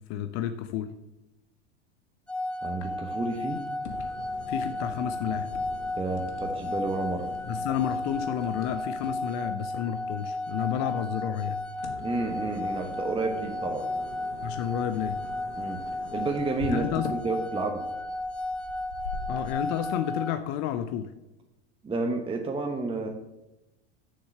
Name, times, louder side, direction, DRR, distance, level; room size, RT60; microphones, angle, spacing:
voice 1, 0.1-0.9 4.5-5.5 7.5-11.6 14.4-15.2 16.7-17.1 19.3-21.1, left 10 dB, 55° left, 10 dB, 0.6 m, -31 dB
sound 1, 2.3-20.3, left 1 dB, 5° left, 0.4 m, -34 dB
voice 2, 2.6-3.6 6.0-7.3 12.0-13.9 15.6-15.8 16.1-17.9 21.8-23.1, right 3 dB, 15° right, 3 dB, 1.0 m, -30 dB
sound 2, 2.7-19.5, left 5 dB, 85° left, 1.3 m, -44 dB
6.9 x 6.6 x 6.6 m, 0.96 s
hypercardioid pair, 85°, 34 cm